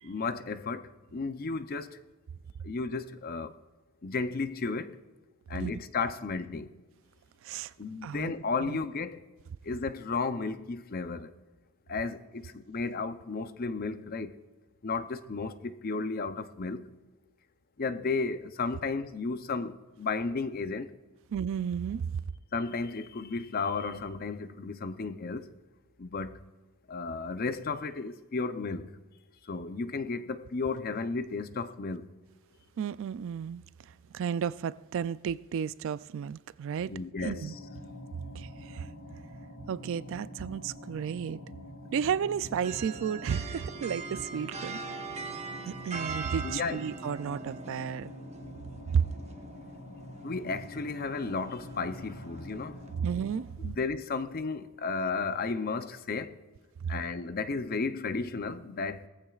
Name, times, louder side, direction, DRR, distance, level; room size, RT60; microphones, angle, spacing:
voice 1, 0.0-2.0 2.6-3.5 4.0-5.0 5.5-6.7 7.8-9.2 9.6-11.3 11.9-14.3 14.8-16.9 17.8-20.9 22.5-25.5 26.0-26.4 26.9-28.9 29.4-32.1 36.9-37.5 46.4-46.8 50.2-52.8 53.6-56.4 56.9-59.1, left 4 dB, 40° left, 0.6 m, -33 dB
voice 2, 8.0-8.3 8.6-8.8 21.3-22.2 32.8-33.6 34.1-36.9 37.2-37.6 38.3-38.9 39.7-41.4 41.9-45.1 45.7-48.1 48.9-49.1 52.9-53.8 56.8-56.9, right 7 dB, 60° right, 0.3 m, -33 dB
sound 1, 37.5-53.4, left 1 dB, 75° left, 4.1 m, -46 dB
sound 2, 42.6-52.9, right 4 dB, 30° right, 0.9 m, -42 dB
19.0 x 14.5 x 2.4 m
head